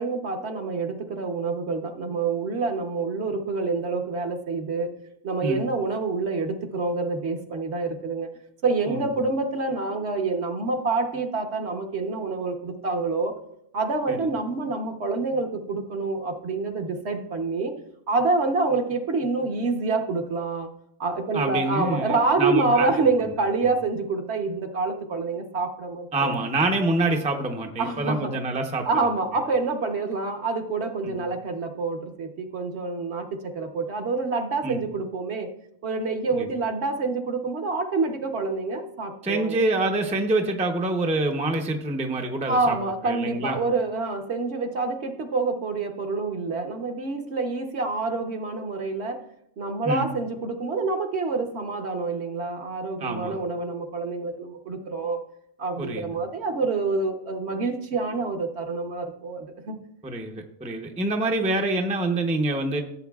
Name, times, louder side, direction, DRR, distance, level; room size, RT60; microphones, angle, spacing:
voice 1, 0.0-4.9 5.2-8.3 8.6-13.3 13.7-17.7 18.1-20.7 21.0-26.3 27.8-28.3 28.8-35.5 35.8-39.6 42.5-49.2 49.6-55.2 55.6-59.8, right 3 dB, 55° right, 4 dB, 1.1 m, -27 dB
voice 2, 21.3-22.9 26.1-28.9 31.0-31.2 34.6-34.8 36.3-36.5 39.2-42.8 43.0-43.6 49.8-50.1 53.0-53.4 55.8-56.1 60.0-62.8, right 2 dB, 5° right, 3 dB, 0.6 m, -26 dB
15.5 x 8.0 x 2.3 m, 0.75 s
omnidirectional pair, 1.4 m